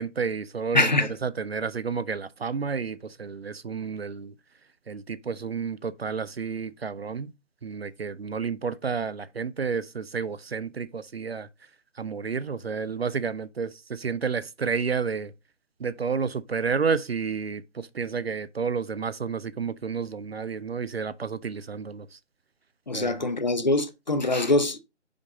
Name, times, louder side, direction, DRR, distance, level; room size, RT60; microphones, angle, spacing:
voice 1, 0.0-0.9 1.2-4.3 4.9-7.3 7.6-11.5 12.0-15.3 15.8-22.2 22.9-23.2, right 5 dB, 60° right, 0.5 m, -30 dB
voice 2, 0.7-1.1 22.9-24.8, left 2 dB, 40° left, 0.8 m, -23 dB
5.3 x 5.2 x 3.8 m
figure-of-eight pair, 170°, 36 cm